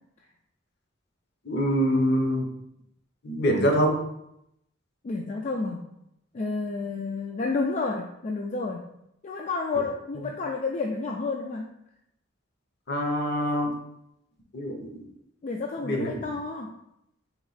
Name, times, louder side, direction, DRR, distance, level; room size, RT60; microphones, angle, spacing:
voice 1, 1.4-2.5 3.2-4.0 12.9-13.7 14.5-15.1 15.8-16.2, equal, 55° left, 2 dB, 0.7 m, -25 dB
voice 2, 5.0-5.8 6.3-8.8 9.2-11.6 15.4-16.7, left 3 dB, 35° left, 0 dB, 0.3 m, -30 dB
3.5 x 3.0 x 4.0 m, 0.79 s
head